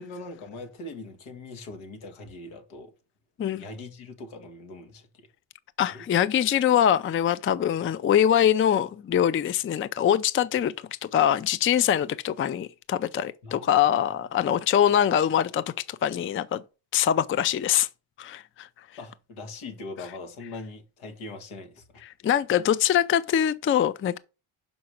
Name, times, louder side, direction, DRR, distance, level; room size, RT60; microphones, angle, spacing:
voice 1, 0.0-2.9 3.6-5.3 5.8-6.0 13.4-13.9 19.0-22.0, left 2 dB, 80° left, 2.0 m, -41 dB
voice 2, 5.8-10.7 11.0-16.6 16.9-17.9 18.2-18.7 22.2-24.2, left 10 dB, 25° left, 0.4 m, -23 dB
5.7 x 5.2 x 6.4 m
cardioid pair, 85°, 49 cm